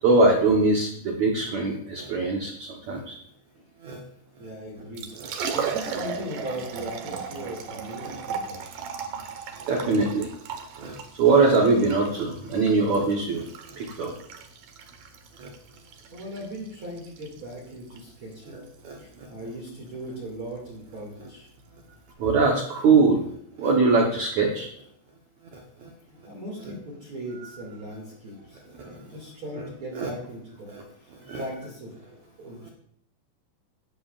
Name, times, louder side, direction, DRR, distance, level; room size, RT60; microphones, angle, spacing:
voice 1, 0.0-3.2 3.8-4.0 5.2-5.4 8.0-8.2 9.6-10.3 10.8-13.5 13.7-14.2 15.4-15.5 18.5-19.3 22.2-23.3 23.6-24.7 25.5-25.9 28.7-29.0 29.6-29.7 29.9-30.1 30.7-30.8 31.1-31.4, right 3 dB, 85° right, 1 dB, 1.5 m, -23 dB
voice 2, 4.4-5.1 5.5-8.6 16.1-18.7 19.0-21.5 26.2-30.7 31.0-32.7, equal, 40° right, -4 dB, 2.3 m, -38 dB
Liquid, 4.8-22.1, right 6 dB, 65° right, 2.2 m, -37 dB
17.0 x 11.0 x 2.5 m, 0.70 s
omnidirectional pair, 5.1 m